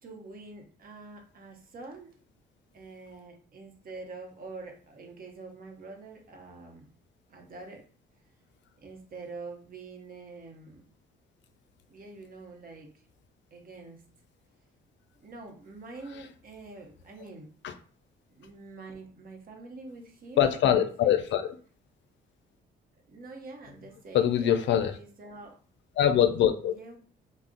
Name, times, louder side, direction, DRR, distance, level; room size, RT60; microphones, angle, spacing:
voice 1, 0.0-2.2 2.7-6.9 7.3-7.9 8.8-10.9 11.9-13.0 13.5-14.0 15.2-17.5 18.3-21.1 23.1-25.6 26.7-27.0, right 3 dB, 45° right, 2 dB, 0.8 m, -46 dB
voice 2, 20.4-21.6 24.1-25.0 26.0-26.7, left 10 dB, 65° left, 9 dB, 0.4 m, -23 dB
2.4 x 2.0 x 3.6 m, 0.43 s
cardioid pair, 90°, 20 cm